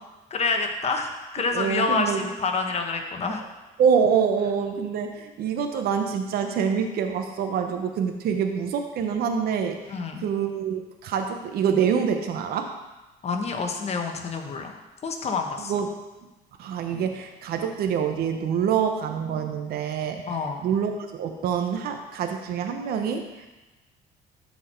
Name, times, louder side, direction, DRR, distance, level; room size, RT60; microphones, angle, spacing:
voice 1, 0.3-3.4 9.9-10.3 13.2-15.7 20.3-20.6, left 4 dB, 40° left, 4 dB, 1.2 m, -28 dB
voice 2, 1.5-2.2 3.8-9.8 10.2-12.7 15.6-15.9 16.6-20.2 20.6-23.5, right 7 dB, 65° right, 5 dB, 0.9 m, -26 dB
12.5 x 4.5 x 4.4 m, 1.1 s
cardioid pair, 110°, 17 cm